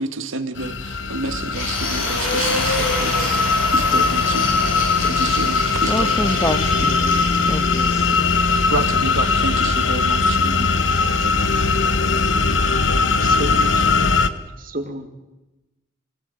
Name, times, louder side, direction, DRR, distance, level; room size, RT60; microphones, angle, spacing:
voice 1, 0.0-4.5 5.0-6.1 8.7-10.7, right 2 dB, 75° right, 10 dB, 1.6 m, -29 dB
sound 1, 0.6-14.3, left 4 dB, 65° left, 1.1 m, -20 dB
sound 2, 1.5-13.5, left 2 dB, 80° left, 7.7 m, -29 dB
voice 2, 5.9-8.3 10.4-10.5, left 1 dB, 15° left, 10 dB, 1.2 m, -27 dB
voice 3, 12.9-13.9 14.6-15.1, right 1 dB, 45° right, 7 dB, 2.4 m, -31 dB
25.0 x 18.0 x 8.9 m, 1.0 s
head